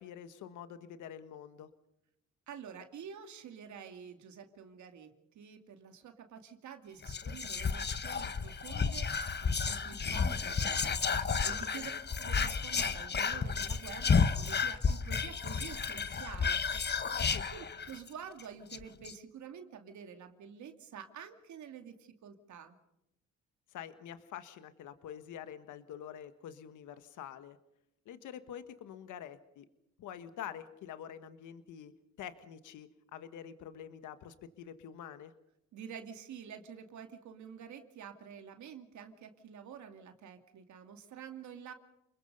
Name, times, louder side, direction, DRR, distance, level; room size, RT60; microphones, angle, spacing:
voice 1, 0.0-1.7 11.5-12.0 17.3-17.5 23.7-27.6 28.0-29.7 30.0-31.9 32.2-35.3, left 9 dB, 85° left, 11 dB, 1.5 m, -47 dB
voice 2, 2.5-11.9 12.2-16.9 17.5-22.8 35.7-41.7, right 7 dB, 70° right, 6 dB, 2.5 m, -48 dB
Whispering, 7.0-18.1 18.4-18.5 18.7-19.1, left 5 dB, 35° left, 1.3 m, -32 dB
29.0 x 21.5 x 5.4 m, 0.81 s
cardioid pair, 90°, 30 cm